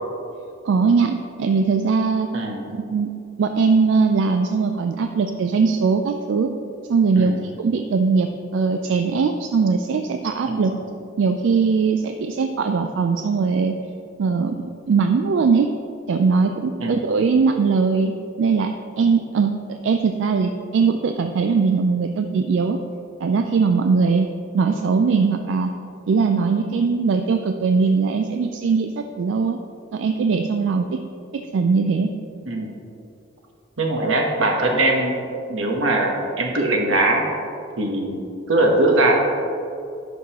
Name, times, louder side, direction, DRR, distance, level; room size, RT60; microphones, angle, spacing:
voice 1, 0.6-2.3 2.7-3.1 3.4-6.5 6.9-8.3 8.5-10.7 11.2-13.7 14.2-15.7 16.1-18.7 19.0-22.8 23.2-24.3 24.5-25.7 26.1-29.6 29.9-31.0 31.3-32.1, right 5 dB, 65° right, 5 dB, 0.3 m, -20 dB
voice 2, 33.8-35.2 35.5-37.2 37.8-39.1, right 2 dB, 85° right, 1 dB, 1.1 m, -21 dB
11.0 x 5.4 x 2.9 m, 2.6 s
head